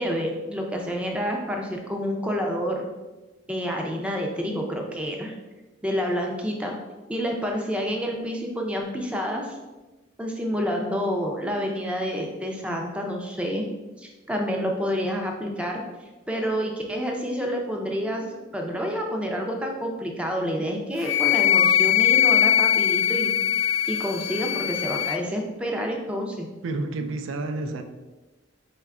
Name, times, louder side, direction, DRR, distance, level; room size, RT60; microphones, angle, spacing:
voice 1, 0.0-2.9 3.5-5.4 5.8-6.7 7.1-9.6 10.2-13.6 14.0-15.8 16.3-23.3 23.9-26.5 27.6-27.8, equal, 5° right, 1 dB, 0.4 m, -28 dB
Wind instrument woodwind instrument, 21.0-25.2, left 10 dB, 80° left, 0.3 m, -21 dB
voice 2, 26.6-27.8, right 2 dB, 75° right, 7 dB, 0.3 m, -30 dB
4.7 x 2.2 x 3.6 m, 1.2 s
head